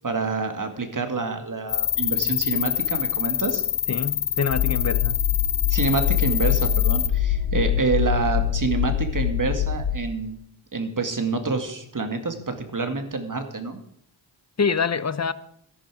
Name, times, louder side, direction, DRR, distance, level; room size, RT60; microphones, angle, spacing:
voice 1, 0.0-3.6 5.7-10.4 10.7-13.8, right 4 dB, 40° right, 2.1 m, -27 dB
sound 1, 1.7-7.1, left 12 dB, 90° left, 0.9 m, -26 dB
voice 2, 3.9-5.2 14.6-15.3, left 5 dB, 35° left, 0.8 m, -25 dB
sound 2, 4.5-10.0, left 9 dB, 75° left, 1.4 m, -24 dB
13.5 x 11.5 x 4.9 m
wide cardioid pair, 75°, 48 cm